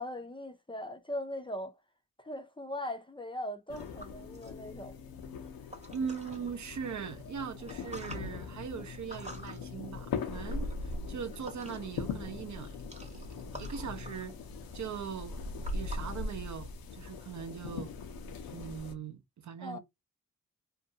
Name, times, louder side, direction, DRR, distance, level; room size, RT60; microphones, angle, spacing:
voice 1, 0.0-1.7 2.2-4.9 19.6-19.8, left 1 dB, 15° left, 0.5 m, -39 dB
sound 1, 3.7-18.9, left 4 dB, 80° left, 0.6 m, -40 dB
sound 2, 3.7-6.5 7.0-12.1 12.3-16.9, equal, 20° right, 0.9 m, -51 dB
voice 2, 5.9-13.2 13.6-14.3 14.7-15.4 15.7-17.9 18.5-19.8, right 7 dB, 55° right, 0.6 m, -40 dB
2.5 x 2.2 x 2.7 m
cardioid pair, 45°, 35 cm